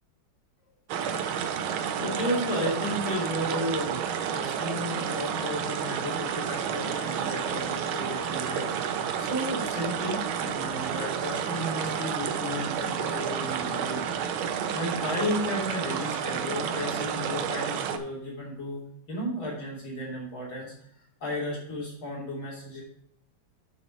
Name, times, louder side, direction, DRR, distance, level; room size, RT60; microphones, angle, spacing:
sound 1, 0.9-18.0, right 8 dB, 90° right, 1.7 m, -30 dB
voice 1, 2.0-14.0 14.4-18.8 19.1-20.7 21.2-22.8, left 1 dB, 80° left, -6 dB, 4.3 m, -33 dB
8.5 x 7.4 x 4.2 m, 0.68 s
omnidirectional pair, 2.2 m